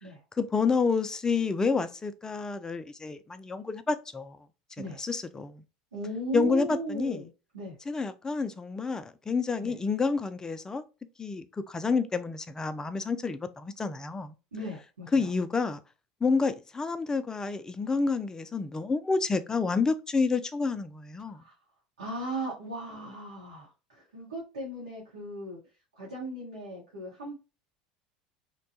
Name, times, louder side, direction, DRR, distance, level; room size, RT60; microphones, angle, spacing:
voice 1, 0.4-4.4 5.0-5.6 6.3-7.2 7.9-10.8 11.2-14.3 15.1-15.8 16.2-21.4, left 4 dB, 15° left, 0.4 m, -29 dB
voice 2, 5.9-7.8 9.6-9.7 14.5-15.3 21.2-21.5 22.0-25.6 25.9-27.3, right 1 dB, 85° right, 1.0 m, -37 dB
2.9 x 2.2 x 2.7 m
hypercardioid pair, 75°, 4 cm